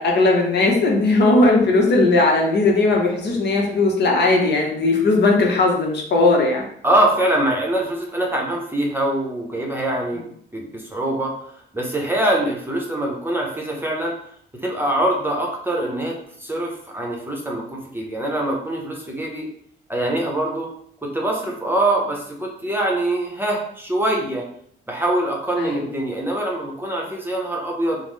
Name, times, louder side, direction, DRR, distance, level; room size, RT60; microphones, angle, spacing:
voice 1, 0.0-6.6 25.6-25.9, left 2 dB, 60° left, 1 dB, 0.8 m, -18 dB
voice 2, 6.8-10.2 10.5-11.3 11.7-14.1 14.6-19.5 19.9-20.7 21.0-24.5 24.9-28.0, right 1 dB, 10° right, -1 dB, 0.7 m, -23 dB
3.5 x 2.0 x 3.2 m, 0.67 s
cardioid pair, 90°, 20 cm